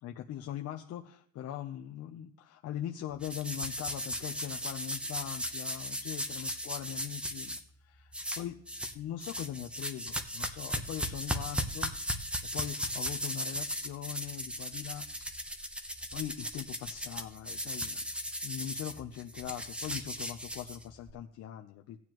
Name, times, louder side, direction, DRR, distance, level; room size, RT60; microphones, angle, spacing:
voice 1, 0.0-8.6 8.9-15.1 16.1-18.0 18.4-22.0, left 11 dB, 60° left, 3 dB, 0.7 m, -41 dB
sound 1, 3.2-7.6 8.1-8.9 9.2-21.1, equal, 5° right, 0.8 m, -37 dB
15.0 x 9.4 x 3.0 m, 0.67 s
cardioid pair, 105°, 29 cm